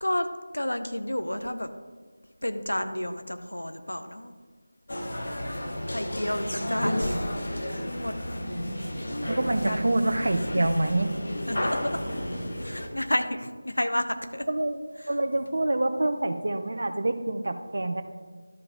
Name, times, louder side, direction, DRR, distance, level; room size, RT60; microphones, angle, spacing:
voice 1, 0.5-1.7 2.4-4.3 5.9-7.3 7.6-8.1 9.2-9.9 10.3-10.5 11.5-12.0 12.6-14.5, left 1 dB, 70° left, 8 dB, 0.8 m, -31 dB
sound 1, 4.9-12.9, equal, 50° left, 1.2 m, -32 dB
voice 2, 9.2-11.1 14.5-14.8 15.1-18.0, right 2 dB, 55° right, 9 dB, 0.7 m, -26 dB
13.0 x 4.9 x 3.6 m, 1.5 s
figure-of-eight pair, 165°, 0 cm